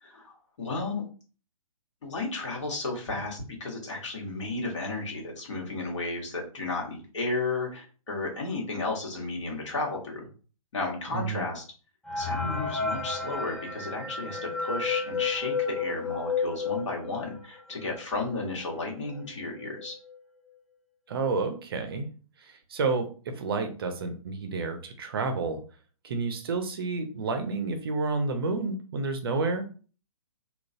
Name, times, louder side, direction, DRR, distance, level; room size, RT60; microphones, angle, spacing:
voice 1, 0.0-1.0 2.0-10.3 10.7-11.6 12.2-19.9, left 3 dB, 55° left, -1 dB, 1.5 m, -33 dB
voice 2, 11.1-11.4 21.1-22.1 22.4-25.6 26.0-29.6, right 3 dB, 40° right, 6 dB, 0.6 m, -30 dB
sound 1, 12.1-17.5 18.0-18.1 18.3-18.4 19.1-19.2 19.6-19.9, left 4 dB, 5° left, 0.3 m, -31 dB
3.7 x 2.3 x 2.6 m, 0.38 s
figure-of-eight pair, 125°, 19 cm